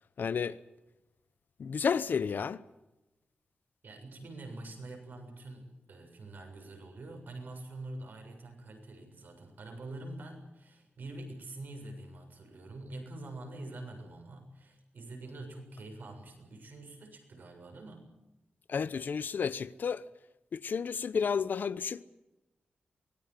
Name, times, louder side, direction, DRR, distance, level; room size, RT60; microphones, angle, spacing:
voice 1, 0.2-0.6 1.6-2.6 18.7-20.0 20.5-22.0, left 6 dB, 65° left, 0.9 m, -31 dB
voice 2, 3.8-18.1, right 2 dB, 65° right, 7.1 m, -45 dB
24.5 x 19.5 x 7.5 m
wide cardioid pair, 130°, 3 cm